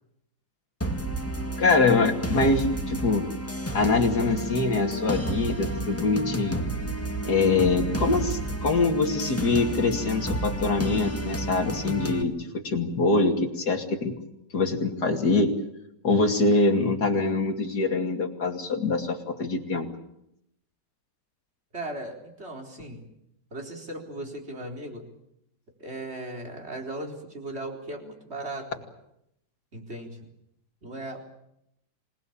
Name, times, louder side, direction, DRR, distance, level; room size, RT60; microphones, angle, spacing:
sound 1, 0.8-12.2, right 1 dB, 5° left, 1.7 m, -31 dB
voice 1, 1.6-3.3 3.7-6.6 7.3-14.1 14.5-15.5 16.0-19.9, left 3 dB, 50° left, 3 dB, 3.1 m, -24 dB
voice 2, 21.7-23.0 23.5-25.0 25.8-28.7 29.7-30.2 30.8-31.2, right 1 dB, 30° right, 2 dB, 4.4 m, -37 dB
27.0 x 19.5 x 8.8 m, 0.79 s
omnidirectional pair, 2.3 m